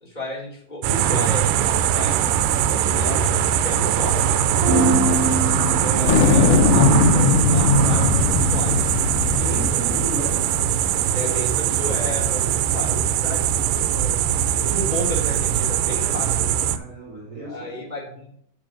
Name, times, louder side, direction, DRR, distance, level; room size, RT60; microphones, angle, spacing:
voice 1, 0.0-2.3 2.7-4.3 5.8-9.0 9.4-9.8 11.1-14.2 14.6-16.5 17.4-18.3, left 1 dB, 15° left, -3 dB, 2.2 m, -33 dB
sound 1, 0.8-16.8, right 10 dB, 90° right, 2.2 m, -21 dB
sound 2, 4.5-10.4, right 1 dB, 55° right, 4.2 m, -26 dB
voice 2, 4.7-5.2 9.4-10.4 16.7-17.8, right 1 dB, 25° right, -6 dB, 3.2 m, -34 dB
sound 3, 6.1-10.8, left 3 dB, 85° left, 1.2 m, -19 dB
7.8 x 6.1 x 5.1 m, 0.65 s
omnidirectional pair, 3.8 m